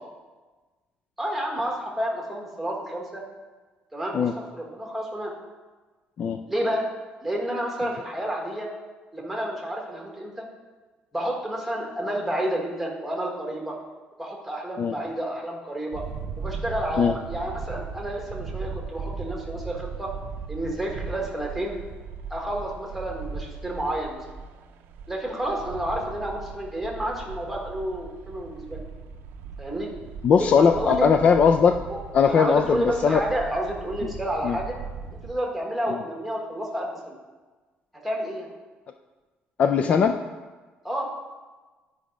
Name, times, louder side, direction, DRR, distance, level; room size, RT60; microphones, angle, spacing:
voice 1, 1.2-3.2 3.9-5.3 6.5-6.9 7.2-8.7 9.1-10.3 11.1-13.7 14.2-16.0 16.4-20.1 20.5-21.8 22.3-24.2 25.1-28.8 29.6-29.9 30.4-30.5 30.8-31.1 31.9-32.0 32.3-34.7 35.2-37.2 38.0-38.5 40.8-41.1, right 1 dB, ahead, -1 dB, 1.3 m, -30 dB
sound 1, 15.9-35.3, right 5 dB, 80° right, 0.5 m, -38 dB
voice 2, 30.2-31.8 32.1-33.2 34.0-34.1 34.4-34.6 39.6-40.2, left 6 dB, 35° left, 7 dB, 0.3 m, -19 dB
10.5 x 4.9 x 5.1 m, 1.3 s
cardioid pair, 170°, 4 cm